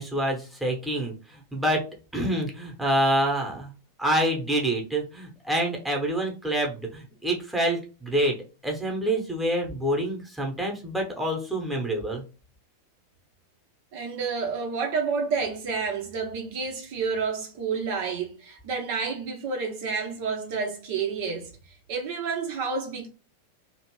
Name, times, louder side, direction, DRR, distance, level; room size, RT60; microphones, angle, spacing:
voice 1, 0.0-1.8 2.1-3.7 4.0-8.3 8.6-12.2, right 1 dB, 5° right, 1.0 m, -27 dB
voice 2, 13.9-21.5 21.9-23.1, right 5 dB, 50° right, 0.7 m, -29 dB
2.9 x 2.6 x 3.0 m
figure-of-eight pair, 90°, 0 cm